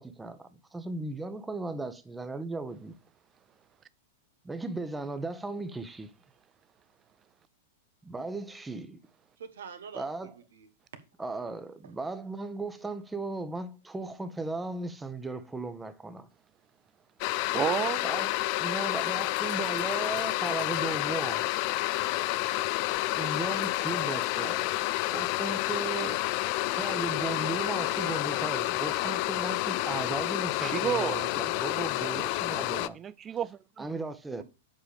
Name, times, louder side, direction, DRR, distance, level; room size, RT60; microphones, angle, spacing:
voice 1, 0.0-2.9 4.4-6.1 8.0-9.0 9.9-10.3 11.2-16.3 18.0-18.3 18.6-21.5 23.1-24.7 25.1-26.3 26.7-33.0 33.8-34.4, right 3 dB, 10° right, 1.0 m, -36 dB
voice 2, 9.4-11.0 11.8-11.9 34.4-34.5, right 7 dB, 80° right, 1.5 m, -46 dB
sound 1, 17.2-32.9, left 19 dB, 50° left, 0.4 m, -29 dB
voice 3, 17.4-18.0 30.6-31.2 32.9-33.9, right 9 dB, 25° right, 0.4 m, -31 dB
sound 2, 19.0-21.5 23.6-24.3, left 7 dB, 75° left, 1.8 m, -52 dB
7.6 x 5.1 x 5.0 m
hypercardioid pair, 115°, 0 cm